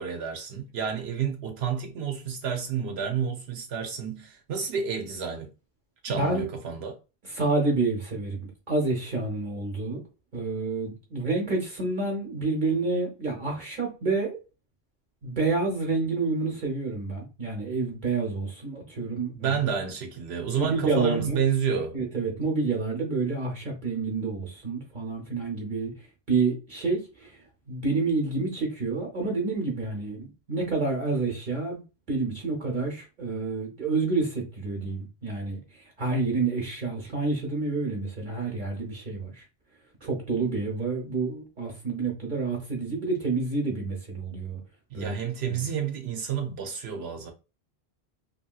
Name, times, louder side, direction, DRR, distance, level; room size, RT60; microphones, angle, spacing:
voice 1, 0.0-5.5 6.0-7.0 19.3-22.0 44.9-47.3, right 7 dB, 80° right, 0.9 m, -30 dB
voice 2, 6.1-6.5 7.2-10.0 10.3-14.4 15.2-19.6 20.6-21.4 21.9-25.9 26.3-27.4 27.7-31.8 32.1-35.6 36.0-39.4 40.0-44.6 44.9-45.2 45.5-45.7, right 3 dB, 50° right, 0.9 m, -28 dB
2.9 x 2.7 x 2.2 m
omnidirectional pair, 1.1 m